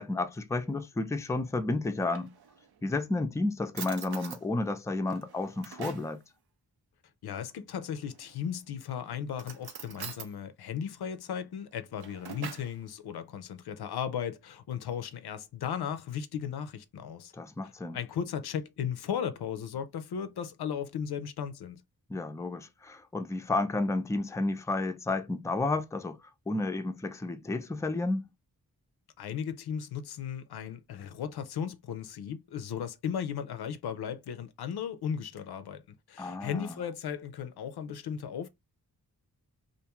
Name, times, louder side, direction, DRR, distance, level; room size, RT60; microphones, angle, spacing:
voice 1, 0.0-2.3 2.8-6.2 17.3-18.0 22.1-26.2 26.5-28.3 36.2-36.7, left 2 dB, 10° left, 0.4 m, -31 dB
Drawer open or close, 1.8-2.8 3.4-3.5 3.7-4.4 5.1-6.1 8.0-8.6 9.3-10.3 11.7-12.8, right 7 dB, 75° right, 0.6 m, -44 dB
voice 2, 7.2-17.3 17.9-21.8 29.2-38.5, left 8 dB, 80° left, 0.5 m, -36 dB
2.5 x 2.3 x 2.9 m
cardioid pair, 60°, 38 cm